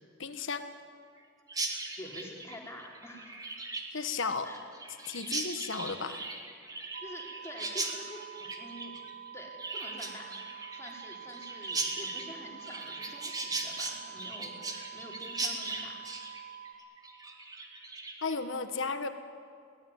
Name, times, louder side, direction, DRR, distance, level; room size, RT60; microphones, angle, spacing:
voice 1, 0.2-0.6 3.9-4.5 5.1-6.2 18.2-19.1, left 4 dB, 70° left, 9 dB, 1.5 m, -34 dB
Chirp tweet, 1.5-18.4, right 3 dB, 20° right, 2.4 m, -38 dB
voice 2, 2.0-3.3 4.4-4.6 5.3-5.4 7.0-9.0 9.3-10.4 10.7-16.0, left 1 dB, 15° left, -1 dB, 3.9 m, -47 dB
sound 1, 6.9-16.7, right 8 dB, 50° right, 2.2 m, -47 dB
22.5 x 17.5 x 9.7 m, 2.3 s
head